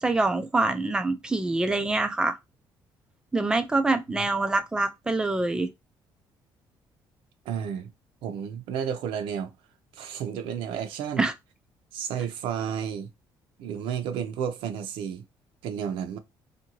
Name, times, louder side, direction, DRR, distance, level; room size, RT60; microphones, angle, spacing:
voice 1, 0.0-2.4 3.3-5.7 11.2-11.3, right 2 dB, 10° right, 0.3 m, -25 dB
voice 2, 7.5-7.9 8.2-9.5 9.9-11.3 11.9-13.1 13.6-15.2 15.6-16.2, right 8 dB, 80° right, 0.5 m, -31 dB
2.6 x 2.6 x 2.9 m
cardioid pair, 175°, 9 cm